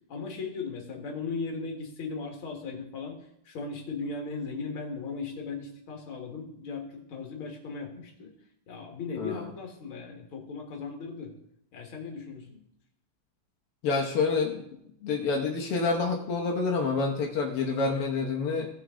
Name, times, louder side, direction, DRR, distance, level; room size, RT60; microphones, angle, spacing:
voice 1, 0.1-3.2 3.5-8.3 8.7-11.3 11.7-12.6, left 4 dB, 70° left, 2 dB, 2.5 m, -37 dB
voice 2, 9.2-9.5 13.8-14.6 15.0-18.7, left 4 dB, 90° left, 1 dB, 1.9 m, -28 dB
16.5 x 6.2 x 3.7 m, 0.75 s
omnidirectional pair, 2.4 m